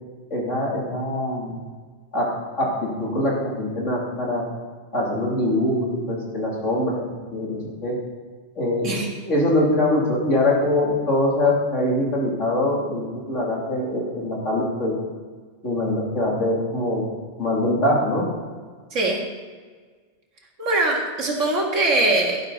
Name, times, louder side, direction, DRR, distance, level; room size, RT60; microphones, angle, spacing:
voice 1, 0.3-1.6 2.1-2.3 2.6-4.4 4.9-7.0 7.3-8.0 8.6-8.9 9.3-14.9 15.6-17.0 17.4-18.2, left 1 dB, 85° left, -4 dB, 3.3 m, -23 dB
voice 2, 18.9-19.2 20.6-22.4, right 2 dB, 85° right, -1 dB, 2.2 m, -22 dB
12.0 x 12.0 x 4.0 m, 1.5 s
omnidirectional pair, 1.2 m